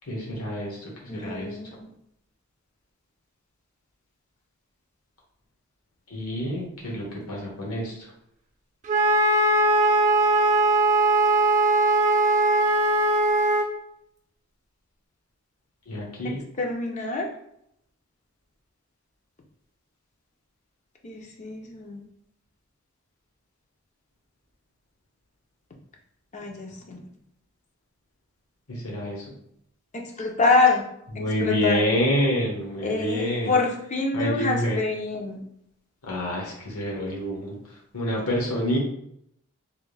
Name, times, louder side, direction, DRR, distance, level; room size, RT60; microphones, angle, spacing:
voice 1, 0.0-1.6 6.1-8.1 15.9-16.4 28.7-29.2 31.1-33.6 34.1-34.8 36.0-38.8, equal, 80° left, -2 dB, 1.1 m, -28 dB
voice 2, 1.1-1.8 16.2-17.3 21.0-22.0 26.3-27.0 29.9-30.8 31.4-31.8 32.8-35.4, left 3 dB, 30° left, 1 dB, 0.4 m, -26 dB
Wind instrument woodwind instrument, 8.9-13.7, right 2 dB, 35° right, 0.5 m, -20 dB
3.3 x 2.5 x 3.2 m, 0.75 s
head